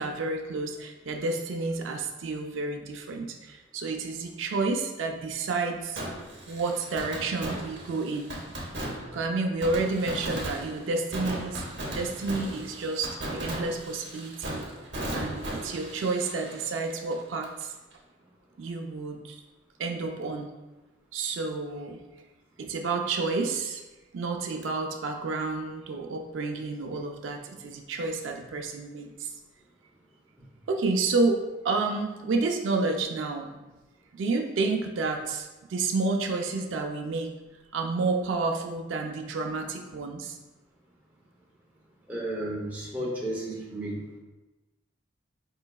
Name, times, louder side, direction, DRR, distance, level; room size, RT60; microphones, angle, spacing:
voice 1, 0.0-6.0 6.5-8.3 9.1-14.7 15.1-17.7 18.6-19.4 19.8-20.5 21.1-22.0 22.6-23.8 24.1-29.3 30.7-33.5 34.1-37.3 37.7-40.4, right 3 dB, 80° right, 3 dB, 0.4 m, -30 dB
Fireworks, 6.0-17.6 17.9-18.0 24.6-24.7, right 1 dB, 65° right, 0.8 m, -37 dB
voice 2, 42.1-44.2, right 1 dB, 10° right, -5 dB, 0.7 m, -33 dB
4.5 x 3.1 x 2.3 m, 1.1 s
head